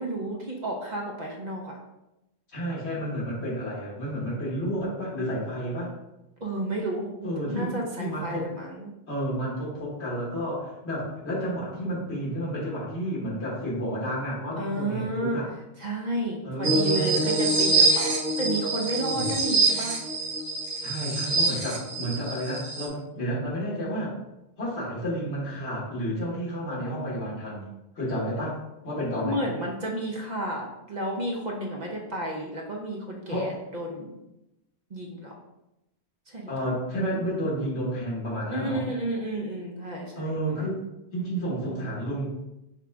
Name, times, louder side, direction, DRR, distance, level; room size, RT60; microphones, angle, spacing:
voice 1, 0.0-1.8 6.4-8.9 14.6-15.4 15.8-20.0 29.2-34.2 34.9-35.3 36.3-36.6 38.5-40.6, right 1 dB, 45° right, -1 dB, 0.8 m, -32 dB
voice 2, 2.5-5.9 7.2-8.5 9.1-15.5 16.4-17.1 19.1-19.3 20.8-24.1 24.6-27.7 28.0-28.6 28.8-29.5 33.3-33.5 36.5-38.9 40.2-40.8 41.1-42.3, equal, 75° left, -6 dB, 1.9 m, -31 dB
sound 1, 16.6-22.9, right 2 dB, 65° right, 1.0 m, -25 dB
5.9 x 2.4 x 3.4 m, 0.91 s
omnidirectional pair, 1.1 m